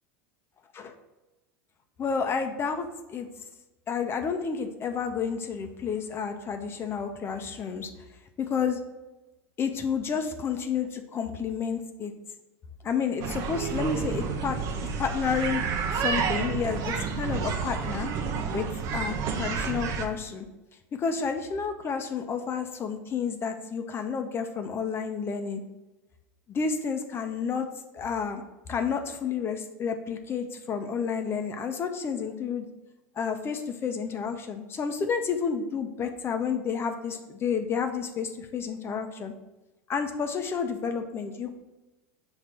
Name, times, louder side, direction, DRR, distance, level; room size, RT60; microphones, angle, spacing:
voice 1, 2.0-3.3 3.9-7.9 8.4-8.8 9.6-12.1 12.8-15.6 15.9-18.1 18.5-20.5 20.9-25.6 26.5-27.7 27.9-28.4 28.7-32.6 33.2-39.3 39.9-41.5, left 6 dB, 30° left, 6 dB, 0.8 m, -30 dB
sound 1, 13.2-20.0, right 6 dB, 55° right, 0.9 m, -30 dB
5.9 x 3.3 x 5.7 m, 1.0 s
hypercardioid pair, 100°, 8 cm